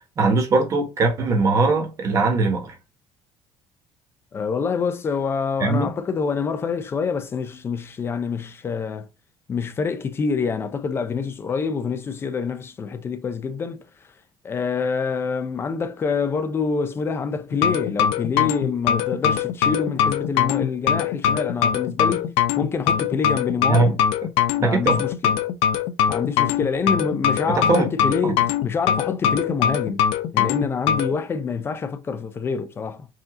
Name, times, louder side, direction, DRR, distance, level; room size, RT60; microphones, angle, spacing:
voice 1, 0.2-2.7 5.6-5.9 23.7-24.0 24.6-25.0 27.5-27.9, right 3 dB, 35° right, 1.2 m, -20 dB
voice 2, 4.3-9.1 9.5-13.8 14.4-23.9 24.6-25.4 26.1-30.1 30.3-33.1, left 5 dB, 25° left, 0.4 m, -26 dB
sound 1, 17.5-31.1, left 9 dB, 90° left, 0.5 m, -22 dB
4.8 x 2.7 x 3.6 m
cardioid pair, 165°, 10 cm